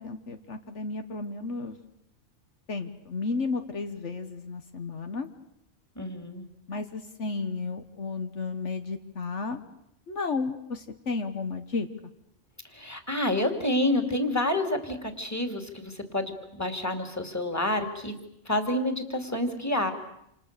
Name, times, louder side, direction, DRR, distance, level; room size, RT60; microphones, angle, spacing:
voice 1, 0.0-1.8 2.7-5.3 6.7-9.6 10.1-11.9, left 4 dB, 70° left, 7 dB, 1.6 m, -33 dB
voice 2, 6.0-6.4 12.7-18.2 18.5-19.9, left 1 dB, 15° left, 6 dB, 2.6 m, -28 dB
28.0 x 27.5 x 6.8 m, 0.80 s
omnidirectional pair, 1.3 m